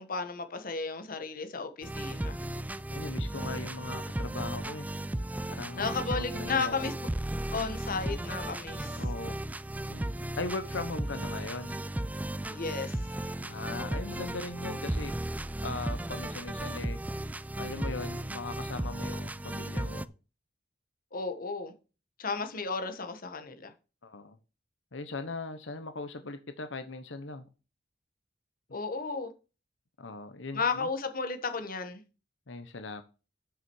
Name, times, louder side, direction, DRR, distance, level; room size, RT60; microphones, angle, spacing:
voice 1, 0.0-2.4 5.8-6.9 7.5-9.0 12.5-13.0 21.1-21.7 22.2-23.7 28.7-29.3 30.5-32.0, left 4 dB, 50° left, 1.4 m, -33 dB
sound 1, 1.8-20.0, right 1 dB, 10° right, 0.3 m, -35 dB
voice 2, 2.9-4.9 5.5-6.9 9.0-9.4 9.9-11.8 13.4-15.1 15.6-17.0 17.6-20.1 24.0-24.4 24.9-27.4 30.0-30.9 32.5-33.0, left 3 dB, 90° left, 1.0 m, -39 dB
8.3 x 6.3 x 4.7 m
head